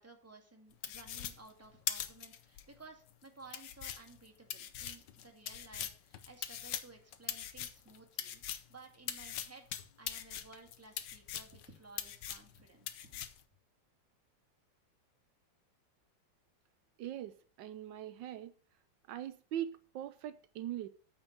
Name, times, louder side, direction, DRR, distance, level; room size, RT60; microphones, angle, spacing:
voice 1, 0.0-9.6 10.0-13.4, right 3 dB, 10° right, 1.8 m, -56 dB
sound 1, 0.8-2.6 3.1-3.2 3.5-8.7 9.1-11.7 12.0-12.6 12.9-13.4, left 10 dB, 75° left, 1.4 m, -41 dB
voice 2, 17.0-18.5 19.1-20.9, right 11 dB, 80° right, 1.3 m, -41 dB
8.8 x 4.5 x 7.2 m
omnidirectional pair, 2.0 m